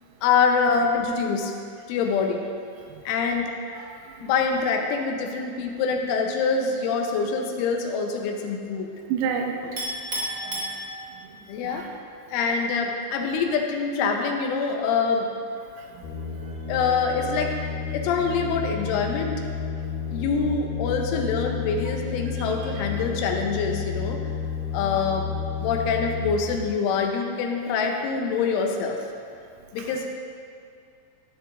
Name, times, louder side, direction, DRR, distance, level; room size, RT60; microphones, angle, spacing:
voice 1, 0.2-1.5 1.9-2.4 3.1-3.5 4.2-8.9 11.5-11.8 12.3-15.3 16.7-19.4 20.1-24.2 24.7-25.3 25.6-29.0 29.7-30.1, left 5 dB, 90° left, 2 dB, 3.2 m, -25 dB
voice 2, 9.1-9.6 10.4-10.5 11.6-11.9, right 7 dB, 90° right, 3 dB, 3.4 m, -28 dB
Chink clink, 9.8-11.4, right 1 dB, 50° right, 0.9 m, -31 dB
sound 1, 16.0-26.6, left 6 dB, 70° left, 2.5 m, -31 dB
12.5 x 12.5 x 2.6 m, 2.3 s
omnidirectional pair, 5.7 m